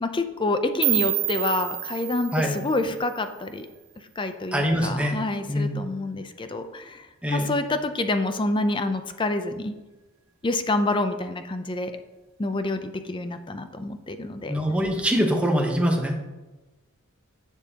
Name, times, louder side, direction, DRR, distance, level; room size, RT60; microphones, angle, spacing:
voice 1, 0.0-3.7 4.2-7.0 7.3-9.7 10.4-11.9 12.4-14.5, left 2 dB, 20° left, 9 dB, 0.5 m, -27 dB
sound 1, 0.8-3.7, right 16 dB, 65° right, 0.6 m, -29 dB
voice 2, 4.5-5.2 5.5-5.9 7.2-7.5 14.5-16.1, equal, 5° right, 1 dB, 1.0 m, -23 dB
10.5 x 7.2 x 2.9 m, 1.1 s
head